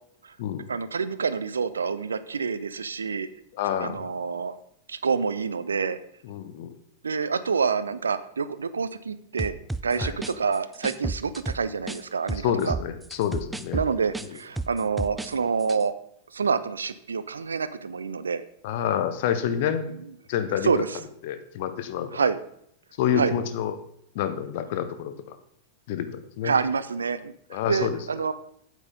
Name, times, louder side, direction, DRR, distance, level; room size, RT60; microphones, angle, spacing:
voice 1, 0.7-3.3 3.8-4.6 4.9-6.0 7.0-9.6 9.8-12.8 13.7-15.9 16.3-18.4 20.6-21.0 22.1-22.4 23.1-23.4 26.4-28.3, right 5 dB, 70° right, 15 dB, 0.6 m, -27 dB
voice 2, 3.5-4.1 6.2-6.7 10.0-10.1 12.4-13.8 18.6-19.9 20.3-20.8 21.2-22.3 23.0-23.7 24.1-25.4 25.9-26.5 27.5-28.0, left 9 dB, 50° left, 10 dB, 1.0 m, -28 dB
sound 1, 9.4-12.0 12.3-15.3 15.6-15.8, right 2 dB, 5° right, 0.5 m, -32 dB
8.4 x 8.3 x 5.1 m, 0.72 s
figure-of-eight pair, 90°, 0 cm